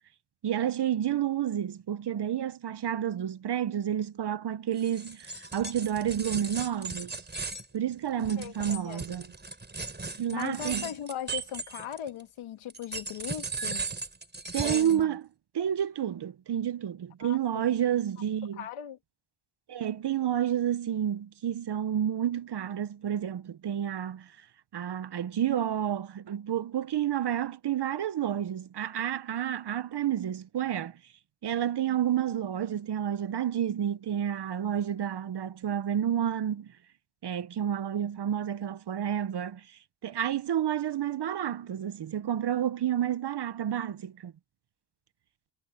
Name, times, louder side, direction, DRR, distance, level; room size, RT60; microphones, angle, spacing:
voice 1, 0.4-7.2 7.7-9.3 10.2-10.8 14.5-15.2 15.5-18.6 19.7-24.3 24.7-31.0 31.4-36.7 37.2-44.3, right 10 dB, 55° right, 1.0 m, -30 dB
sound 1, 4.8-12.2 12.7-15.0, right 3 dB, 20° right, 4.7 m, -37 dB
voice 2, 8.4-9.0 10.3-13.9 14.6-15.2 17.2-17.7 18.5-19.0, left 10 dB, 85° left, 2.0 m, -39 dB
cardioid pair, 85°, 48 cm